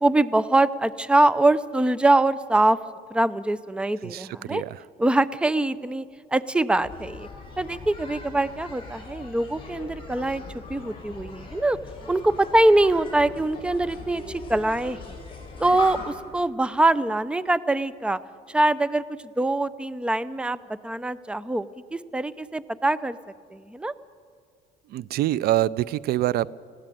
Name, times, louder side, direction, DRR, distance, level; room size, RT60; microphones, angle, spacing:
voice 1, 0.0-2.8 3.1-4.6 5.0-6.0 6.3-7.3 7.6-11.8 12.1-15.2 15.6-18.2 18.5-19.0 19.4-23.2 23.5-23.9, right 2 dB, 5° right, 17 dB, 0.6 m, -23 dB
voice 2, 4.0-4.8 24.9-26.5, right 14 dB, 65° right, 21 dB, 0.4 m, -25 dB
sound 1, 6.8-16.2, left 3 dB, 30° left, 6.4 m, -40 dB
19.0 x 16.0 x 9.1 m, 2.1 s
cardioid pair, 110°, 17 cm